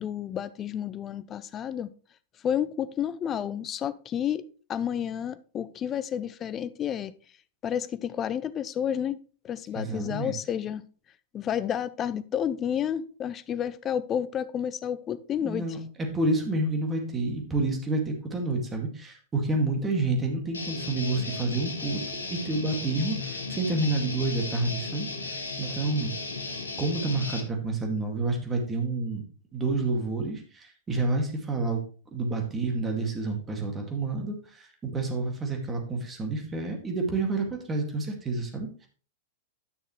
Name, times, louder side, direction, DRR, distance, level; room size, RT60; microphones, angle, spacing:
voice 1, 0.0-1.9 2.4-7.1 7.6-9.2 9.4-10.8 11.3-15.6, left 9 dB, 30° left, 0.5 m, -30 dB
voice 2, 9.7-10.4 15.4-22.0 22.3-26.1 26.8-29.2 29.5-31.8 32.1-38.9, right 2 dB, 20° right, 2.1 m, -29 dB
Guitar, 20.5-27.4, left 3 dB, 85° left, 1.4 m, -35 dB
9.8 x 6.3 x 3.2 m
figure-of-eight pair, 100°, 0 cm